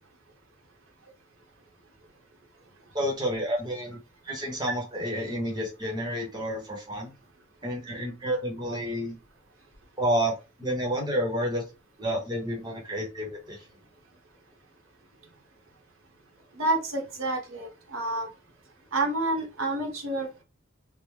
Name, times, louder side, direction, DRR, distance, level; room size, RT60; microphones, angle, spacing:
voice 1, 2.9-4.0 4.2-7.1 7.6-9.2 10.0-11.6 12.0-13.6, equal, 20° right, 0 dB, 0.9 m, -30 dB
voice 2, 16.6-18.3 18.9-20.4, right 2 dB, 80° right, 1 dB, 1.0 m, -29 dB
3.3 x 2.1 x 3.2 m, 0.28 s
head